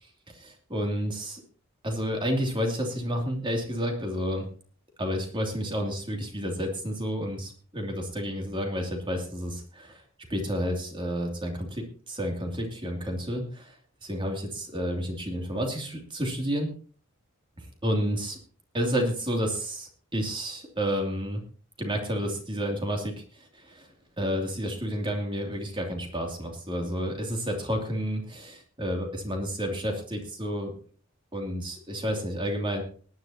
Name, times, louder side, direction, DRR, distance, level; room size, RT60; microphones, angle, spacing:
voice 1, 0.3-1.4 1.8-4.5 5.0-10.0 10.3-13.7 14.0-16.7 17.6-18.4 18.7-21.4 21.8-23.9 24.2-30.7 31.3-32.8, equal, 25° right, 2 dB, 2.8 m, -30 dB
19.5 x 10.5 x 2.9 m, 0.42 s
head